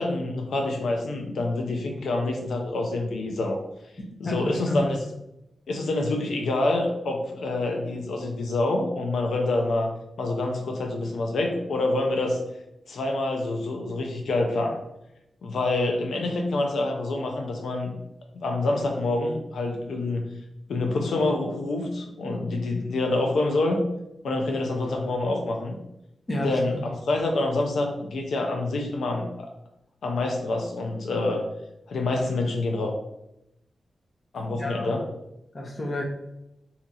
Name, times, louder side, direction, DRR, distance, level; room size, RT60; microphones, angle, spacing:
voice 1, 0.0-3.6 4.2-5.0 5.7-9.9 10.2-12.4 12.9-14.8 15.4-17.9 18.3-20.3 20.7-23.8 24.2-25.7 26.4-29.5 30.0-31.5 31.9-32.9 34.3-35.0, left 2 dB, 90° left, 2 dB, 0.4 m, -26 dB
voice 2, 4.2-4.8 26.3-26.8 34.5-34.9 35.5-36.0, left 1 dB, 35° left, 0 dB, 0.8 m, -30 dB
2.8 x 2.4 x 4.0 m, 0.87 s
wide cardioid pair, 95°, 0 cm